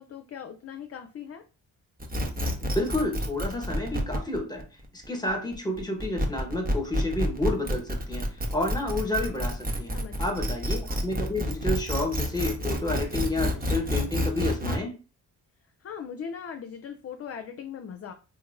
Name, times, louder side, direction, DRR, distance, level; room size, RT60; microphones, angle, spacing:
voice 1, 0.0-1.4 9.9-10.5 15.8-18.1, left 7 dB, 35° left, 0.4 m, -39 dB
sound 1, 2.0-14.8, equal, 20° right, 0.8 m, -29 dB
voice 2, 2.6-4.7 4.9-9.9 10.2-15.0, left 1 dB, 10° left, 1.1 m, -30 dB
2.8 x 2.6 x 2.5 m
supercardioid pair, 55°, 41 cm